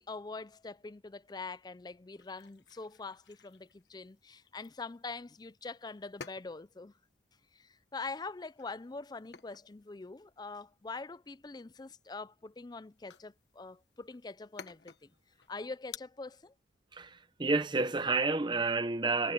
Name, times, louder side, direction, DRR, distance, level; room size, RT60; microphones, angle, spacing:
voice 1, 0.0-6.9 7.5-15.1 15.5-16.5, left 3 dB, 20° left, 0.4 m, -44 dB
sound 1, 2.2-16.0, left 6 dB, 70° left, 1.3 m, -55 dB
voice 2, 16.9-19.3, right 3 dB, 25° right, 0.7 m, -30 dB
head